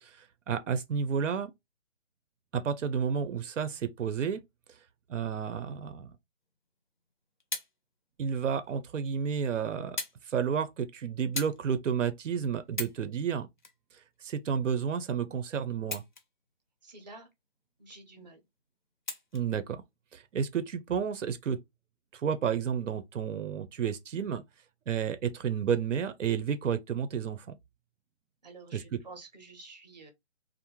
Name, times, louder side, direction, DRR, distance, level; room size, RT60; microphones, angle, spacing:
voice 1, 0.0-1.5 2.5-4.4 5.1-6.1 8.2-10.0 10.3-13.5 14.2-16.0 19.3-19.8 20.1-21.6 22.1-24.4 24.9-27.5 28.7-29.0, right 7 dB, 85° right, 0.6 m, -31 dB
sound 1, 7.0-7.7 8.6-8.7 10.0-10.2 10.5-10.8 11.3-11.6 12.1-12.2 12.6-13.0 13.6-14.6 15.8-16.5 16.9-17.0 19.0-19.5 20.4-20.5, left 3 dB, 45° left, 0.4 m, -38 dB
voice 2, 16.8-17.3 17.8-18.4 28.4-30.1, right 3 dB, 35° right, 0.6 m, -49 dB
2.5 x 2.1 x 2.9 m
hypercardioid pair, 175°, 36 cm